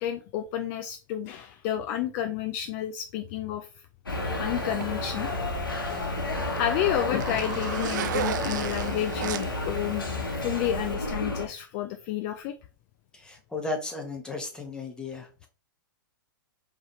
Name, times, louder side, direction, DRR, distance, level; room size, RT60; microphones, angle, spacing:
voice 1, 0.0-3.7 4.2-5.3 6.6-10.1 10.3-12.6, left 11 dB, 40° left, 8 dB, 0.4 m, -30 dB
sound 1, 4.1-11.5, left 2 dB, 85° left, 1.2 m, -31 dB
Zipper (clothing), 4.1-11.0, right 11 dB, 60° right, 0.4 m, -37 dB
voice 2, 13.1-15.5, left 3 dB, 5° left, 2 dB, 1.2 m, -35 dB
4.5 x 3.2 x 3.1 m, 0.34 s
figure-of-eight pair, 105°, 11 cm